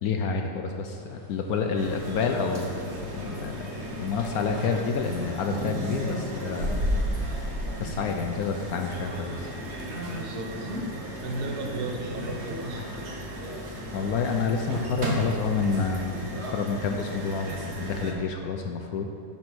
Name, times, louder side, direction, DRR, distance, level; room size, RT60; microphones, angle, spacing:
voice 1, 0.0-3.7 4.0-6.9 7.2-7.5 7.8-9.5 13.9-19.1, left 5 dB, 70° left, 4 dB, 0.9 m, -29 dB
sound 1, 0.9-16.1, equal, 20° right, 1.6 m, -43 dB
sound 2, 1.8-18.1, equal, 45° right, 1.3 m, -34 dB
voice 2, 10.1-10.5 11.2-12.9, right 2 dB, 65° right, 2 dB, 1.4 m, -34 dB
9.5 x 4.4 x 6.0 m, 2.8 s
omnidirectional pair, 1.9 m